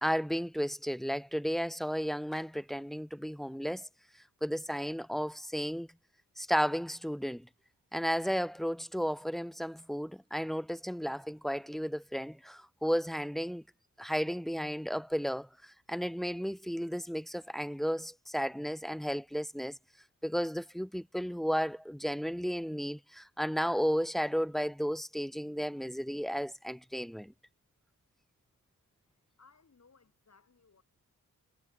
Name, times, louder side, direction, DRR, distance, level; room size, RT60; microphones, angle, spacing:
voice 1, 0.0-3.9 4.4-5.9 6.4-7.5 7.9-13.6 14.0-19.8 20.2-27.3, equal, ahead, 0.4 m, -33 dB
voice 2, 29.0-30.8, left 4 dB, 50° left, 5.4 m, -64 dB
cardioid pair, 60°, 33 cm